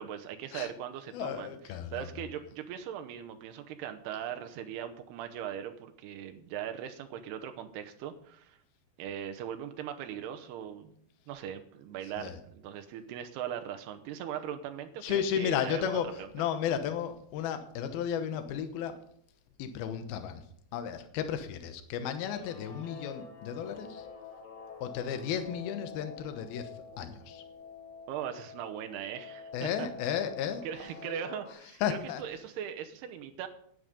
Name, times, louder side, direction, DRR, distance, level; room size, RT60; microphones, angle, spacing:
voice 1, 0.0-8.6 9.0-10.9 11.3-16.3 28.1-30.2 30.6-33.5, right 9 dB, 80° right, 7 dB, 2.9 m, -40 dB
voice 2, 1.1-2.0 12.2-12.4 15.0-16.1 16.3-19.0 19.6-20.4 20.7-24.0 24.8-26.7 27.0-27.4 29.5-30.6 31.8-32.2, left 9 dB, 75° left, 9 dB, 2.8 m, -33 dB
Guitar, 22.1-31.5, left 5 dB, 35° left, 4.1 m, -48 dB
10.5 x 10.0 x 5.3 m, 0.67 s
omnidirectional pair, 4.7 m